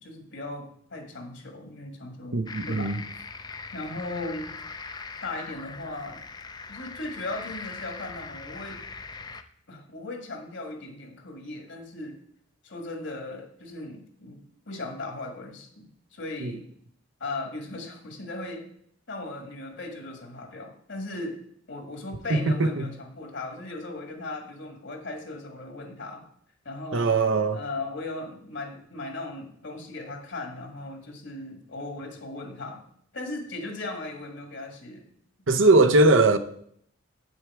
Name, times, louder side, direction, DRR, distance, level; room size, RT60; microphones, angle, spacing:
voice 1, 0.0-3.0 3.7-4.6 5.2-6.2 6.7-8.8 9.7-12.2 12.6-14.4 14.7-15.8 16.1-16.6 17.2-18.7 19.1-21.4 21.7-26.2 26.6-27.1 27.5-32.8 33.1-35.1 35.6-36.0, left 2 dB, 60° left, 1.6 m, -37 dB
voice 2, 2.3-3.0 16.4-16.5 22.3-22.9 26.9-27.6 35.5-36.4, right 2 dB, 70° right, 0.7 m, -20 dB
sound 1, 2.5-9.4, left 4 dB, 20° left, 0.4 m, -40 dB
8.4 x 6.4 x 4.7 m
head